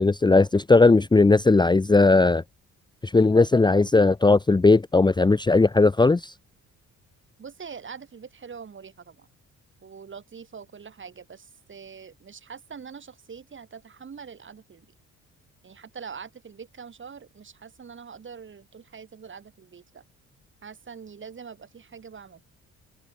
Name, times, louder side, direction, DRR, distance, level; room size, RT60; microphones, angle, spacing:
voice 1, 0.0-2.4 3.0-6.3, left 3 dB, 15° left, 0.8 m, -18 dB
voice 2, 7.4-9.3 9.8-14.9 15.6-20.0 20.6-22.4, right 6 dB, 40° right, 3.8 m, -43 dB
cardioid pair, 90°, 30 cm